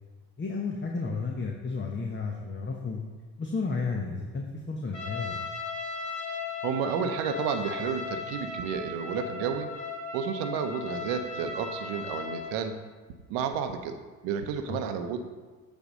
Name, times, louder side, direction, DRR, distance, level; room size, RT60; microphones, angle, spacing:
voice 1, 0.4-3.0 3.4-5.4 14.7-14.8, left 4 dB, 25° left, 0 dB, 1.1 m, -32 dB
Trumpet, 4.9-12.6, left 4 dB, 40° left, 2.1 m, -37 dB
voice 2, 6.6-9.7 10.1-12.8 13.3-14.0 14.2-15.3, right 7 dB, 70° right, 7 dB, 0.9 m, -31 dB
8.4 x 4.4 x 5.2 m, 1.3 s
hypercardioid pair, 55°, 44 cm